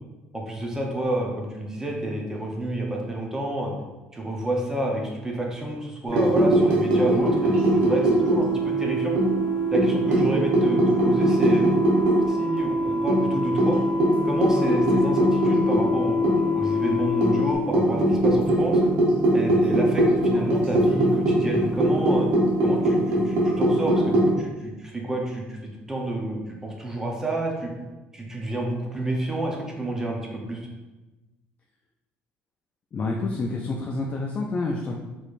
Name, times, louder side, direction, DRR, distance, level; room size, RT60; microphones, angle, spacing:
voice 1, 0.3-3.7 4.1-9.1 9.7-11.7 12.3-13.8 14.2-16.2 16.5-18.8 19.3-22.3 22.6-27.7 28.1-30.7, right 1 dB, 15° right, -1 dB, 0.8 m, -29 dB
sound 1, 6.1-8.8 9.2-12.3 12.6-12.7 13.1-16.6 17.2-24.3, right 1 dB, 80° right, 1.0 m, -21 dB
sound 2, 7.2-17.5, equal, 75° left, 1.1 m, -26 dB
voice 2, 32.9-35.0, left 3 dB, 35° left, 0 dB, 0.4 m, -28 dB
4.7 x 3.1 x 2.6 m, 1.1 s
cardioid pair, 115°, 4 cm